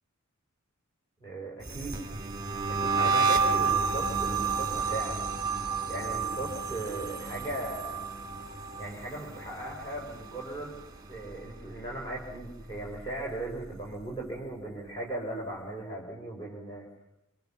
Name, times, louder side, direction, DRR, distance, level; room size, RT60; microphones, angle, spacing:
voice 1, 1.2-2.0 2.7-5.2 5.9-8.0 8.8-10.8 11.1-16.9, right 2 dB, 20° left, -3 dB, 5.3 m, -38 dB
sound 1, 1.6-10.8 11.1-11.5 11.8-13.4, right 5 dB, 20° right, 2.1 m, -31 dB
29.5 x 25.5 x 5.9 m, 0.86 s
head